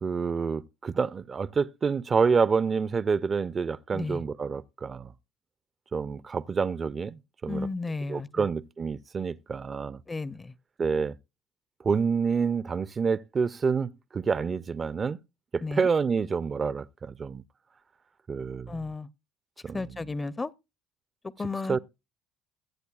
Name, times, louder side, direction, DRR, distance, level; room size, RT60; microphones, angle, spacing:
voice 1, 0.0-5.1 5.9-7.7 8.1-10.0 10.8-11.1 11.8-15.2 15.5-17.4 18.3-18.8 19.6-20.0 21.7-21.8, right 5 dB, 35° right, 0.5 m, -28 dB
voice 2, 7.5-8.5 10.1-10.5 15.6-15.9 18.7-19.1 19.7-20.5 21.4-21.8, left 3 dB, 25° left, 0.6 m, -33 dB
22.5 x 8.2 x 2.4 m
hypercardioid pair, 60°, 0 cm